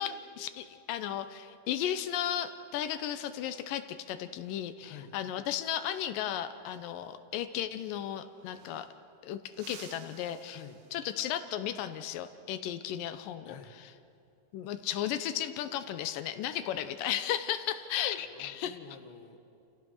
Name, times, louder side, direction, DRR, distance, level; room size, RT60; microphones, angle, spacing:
voice 1, 0.0-8.9 9.2-10.6 10.9-13.6 14.5-18.8, left 10 dB, 80° left, 10 dB, 2.4 m, -35 dB
voice 2, 4.8-5.1 10.5-10.8 13.4-13.9 17.9-19.4, left 8 dB, 50° left, 5 dB, 1.6 m, -50 dB
sound 1, 8.2-9.1 9.5-11.3 13.8-14.1 15.5-16.0, right 8 dB, 80° right, 2.7 m, -54 dB
29.0 x 15.5 x 6.4 m, 2.6 s
omnidirectional pair, 3.9 m